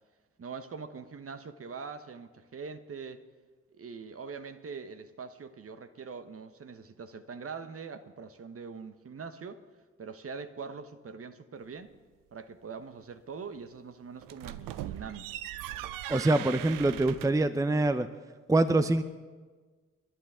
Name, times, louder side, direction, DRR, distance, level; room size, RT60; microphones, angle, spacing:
voice 1, 0.4-3.2 3.7-9.6 10.0-11.9 12.3-15.3, right 5 dB, 40° right, 1.2 m, -43 dB
sound 1, 14.2-17.5, right 13 dB, 70° right, 0.6 m, -40 dB
voice 2, 16.1-18.1 18.5-19.0, right 2 dB, 10° right, 0.7 m, -25 dB
30.0 x 11.0 x 3.7 m
hypercardioid pair, 40°, 35 cm